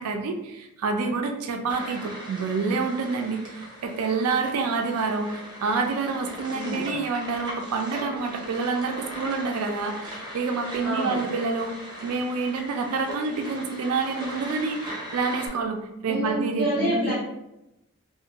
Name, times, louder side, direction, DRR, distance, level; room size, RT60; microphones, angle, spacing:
voice 1, 0.0-11.7 12.0-17.1, right 4 dB, 85° right, 4 dB, 0.3 m, -28 dB
sound 1, 1.7-15.5, equal, 20° right, 0.5 m, -39 dB
voice 2, 6.5-6.9 10.8-11.2 16.0-17.1, equal, 5° left, -9 dB, 1.0 m, -28 dB
2.5 x 2.2 x 2.8 m, 0.89 s
head